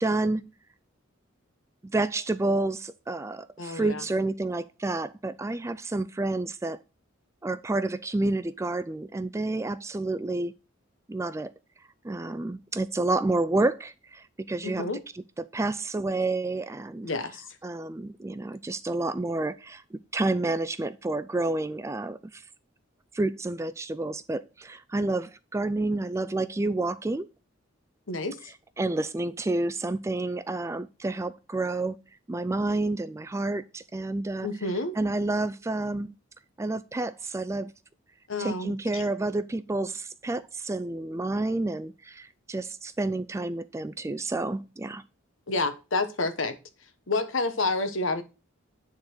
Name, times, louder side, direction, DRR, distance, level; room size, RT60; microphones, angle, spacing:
voice 1, 0.0-0.5 1.8-6.8 7.4-10.5 11.1-11.5 12.0-14.8 15.4-17.1 17.6-22.4 23.1-27.3 28.8-32.0 32.3-34.5 35.0-36.1 36.6-37.7 38.4-45.0, right 2 dB, 15° right, 0.3 m, -29 dB
voice 2, 3.6-4.0 14.6-15.0 17.0-17.4 28.1-28.4 34.4-34.9 38.3-39.0 45.5-46.6 47.1-48.2, left 2 dB, 70° left, 1.2 m, -29 dB
9.6 x 3.9 x 6.2 m
head